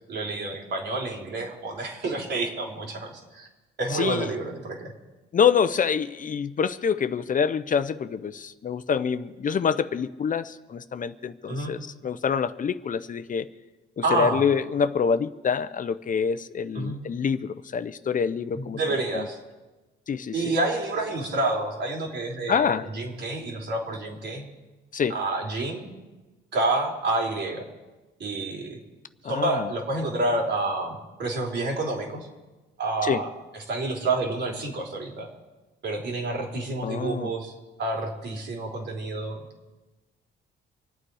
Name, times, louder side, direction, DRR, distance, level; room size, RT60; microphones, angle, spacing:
voice 1, 0.1-3.5 3.8-4.9 11.5-11.7 14.0-14.4 16.7-17.0 18.5-19.4 20.3-24.5 25.1-25.9 26.5-27.6 28.2-28.8 29.3-32.3 32.8-33.3 33.7-35.3 35.8-37.5 37.8-39.4, right 2 dB, 60° right, 0 dB, 4.0 m, -28 dB
voice 2, 3.9-4.3 5.3-13.5 14.1-18.8 19.1-19.3 20.1-20.5 22.5-22.9 24.9-25.2 29.2-29.7 33.0-33.2 36.8-37.3, left 6 dB, 40° left, 12 dB, 0.7 m, -26 dB
26.5 x 9.0 x 4.8 m, 1.2 s
cardioid pair, 90°, 20 cm